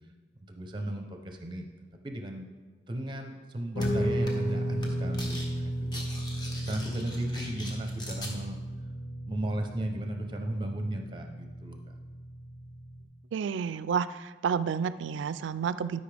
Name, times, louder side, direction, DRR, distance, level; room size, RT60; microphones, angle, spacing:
voice 1, 0.5-1.7 2.0-2.5 2.9-6.0 6.6-8.6 9.3-11.9, right 1 dB, 25° right, 4 dB, 0.7 m, -35 dB
Guitar, 3.7-13.0, equal, 90° left, 1.5 m, -34 dB
sound 1, 3.8-3.9 4.3-4.5 4.8-5.5 5.7-8.3, left 1 dB, 25° left, 1.0 m, -41 dB
voice 2, 13.3-16.0, right 7 dB, 85° right, 15 dB, 0.3 m, -30 dB
12.0 x 5.4 x 3.4 m, 1.3 s
head